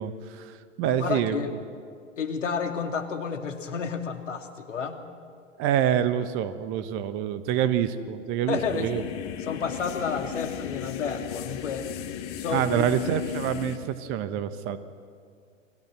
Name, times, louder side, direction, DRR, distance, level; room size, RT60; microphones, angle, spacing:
voice 1, 0.0-1.4 5.6-9.0 12.5-14.8, right 10 dB, 30° right, 12 dB, 1.4 m, -27 dB
voice 2, 0.8-1.5 2.2-5.0 8.5-8.9 9.4-11.9 12.4-12.9, left 6 dB, 65° left, 6 dB, 2.5 m, -31 dB
sound 1, 8.5-13.8, left 11 dB, 35° left, 1.7 m, -35 dB
30.0 x 20.5 x 6.2 m, 2.2 s
figure-of-eight pair, 105°, 39 cm